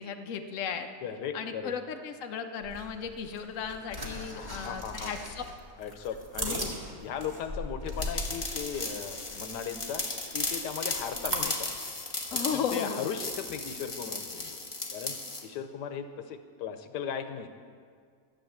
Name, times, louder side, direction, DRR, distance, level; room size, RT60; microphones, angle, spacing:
voice 1, 0.0-0.9 1.3-5.4 6.4-6.7 11.3-11.5 12.3-13.1, left 6 dB, 55° left, 5 dB, 1.1 m, -35 dB
voice 2, 1.0-1.7 4.1-5.2 5.8-6.7 7.0-10.0 10.3-11.7 12.3-14.6 14.9-17.6, left 7 dB, 90° left, 8 dB, 1.4 m, -37 dB
sound 1, 2.6-11.4, equal, 25° right, 1.8 m, -39 dB
sound 2, 8.0-15.4, left 2 dB, 20° left, 1.1 m, -36 dB
13.0 x 9.0 x 7.3 m, 2.1 s
omnidirectional pair, 1.8 m